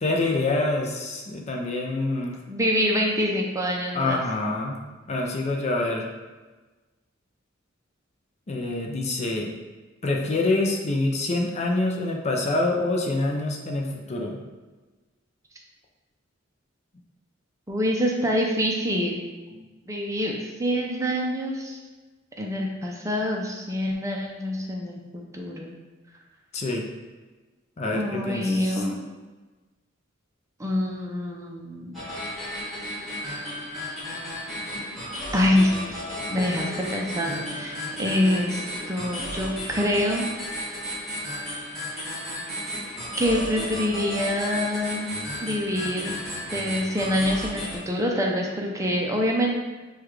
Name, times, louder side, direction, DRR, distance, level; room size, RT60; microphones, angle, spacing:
voice 1, 0.0-2.4 3.9-4.8 5.1-6.1 8.5-9.6 10.0-14.4 19.5-19.6 26.5-26.9 27.8-28.8, left 2 dB, 35° left, 0 dB, 0.5 m, -26 dB
voice 2, 2.5-4.2 17.7-19.2 19.9-21.8 22.4-25.7 27.9-29.0 30.6-32.0 35.3-35.8 36.3-38.6 38.9-40.2 41.9-42.1 43.2-45.1 45.4-46.2 46.5-49.6, equal, 15° right, -1 dB, 0.5 m, -26 dB
sound 1, 31.9-47.8, equal, ahead, 1.5 m, -34 dB
6.7 x 2.4 x 3.1 m, 1.2 s
head